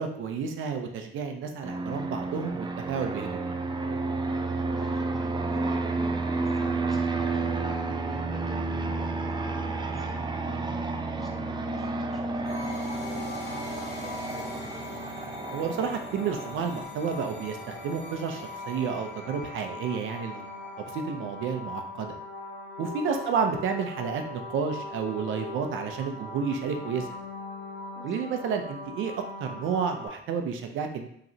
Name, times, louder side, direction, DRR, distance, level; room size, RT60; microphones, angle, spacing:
voice 1, 0.0-3.5 15.5-20.4 20.9-22.2 22.8-27.1 28.0-29.1 29.4-31.1, right 6 dB, 80° right, 5 dB, 0.6 m, -31 dB
Fixed-wing aircraft airplane, 1.6-16.8, right 3 dB, 25° right, 0.4 m, -31 dB
voice 2, 4.3-8.8 9.2-14.9 23.0-23.5 27.9-28.4, equal, ahead, -2 dB, 1.0 m, -47 dB
sound 1, 12.4-30.1, left 2 dB, 55° left, 1.2 m, -40 dB
5.0 x 3.0 x 2.8 m, 0.70 s
cardioid pair, 90°, 20 cm